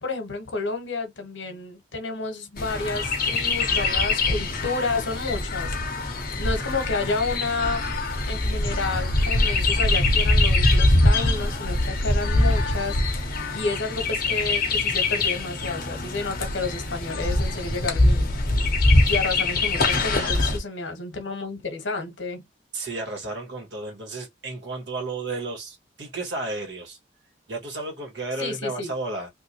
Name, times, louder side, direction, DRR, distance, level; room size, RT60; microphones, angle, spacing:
voice 1, 0.0-7.8 8.3-18.3 19.1-22.4 28.4-28.9, left 3 dB, 80° left, 1.2 m, -30 dB
Chirp tweet, 2.6-20.6, left 2 dB, 50° left, 1.1 m, -23 dB
voice 2, 19.9-20.5 22.7-27.0 27.5-29.3, right 2 dB, 70° right, 1.9 m, -33 dB
3.5 x 2.8 x 3.0 m
head